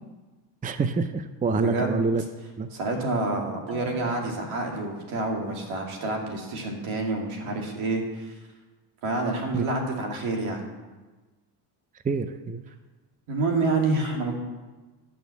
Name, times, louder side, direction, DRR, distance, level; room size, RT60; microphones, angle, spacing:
voice 1, 0.6-2.2 2.6-2.7 9.5-9.6 12.0-12.6, right 4 dB, 15° right, 10 dB, 0.6 m, -26 dB
voice 2, 1.5-2.0 2.7-8.3 9.0-10.6 13.3-14.4, right 2 dB, 75° right, 1 dB, 2.6 m, -28 dB
Marimba xylophone, 3.7-6.7, left 1 dB, ahead, 1.0 m, -50 dB
11.5 x 6.3 x 7.0 m, 1.2 s
supercardioid pair, 80°, 50 cm